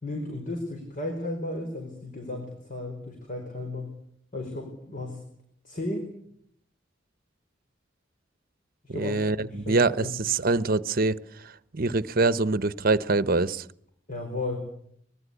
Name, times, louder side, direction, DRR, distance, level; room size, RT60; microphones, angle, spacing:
voice 1, 0.0-4.0 4.3-5.2 5.6-6.1 8.9-10.2 14.1-14.7, left 2 dB, 45° left, 3 dB, 5.0 m, -34 dB
voice 2, 9.0-11.2 11.7-13.6, right 3 dB, 50° right, 16 dB, 1.0 m, -24 dB
24.5 x 21.0 x 8.3 m, 0.68 s
head